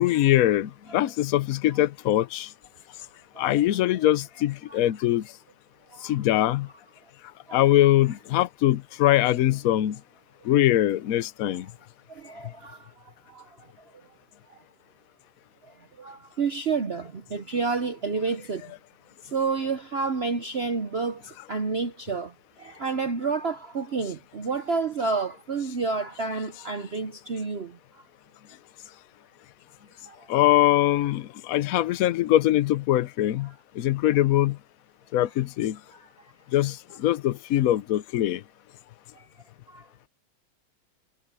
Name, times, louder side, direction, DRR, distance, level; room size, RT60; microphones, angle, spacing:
voice 1, 0.0-2.5 3.4-5.2 6.0-6.7 7.5-10.0 10.5-11.7 30.3-33.5 33.8-34.6 35.1-35.8 36.5-38.4, left 13 dB, 65° left, 0.8 m, -22 dB
voice 2, 12.2-12.8 13.3-13.4 16.0-18.6 19.3-21.2 21.5-22.3 22.6-27.7, right 4 dB, 60° right, 0.6 m, -29 dB
omnidirectional pair, 2.2 m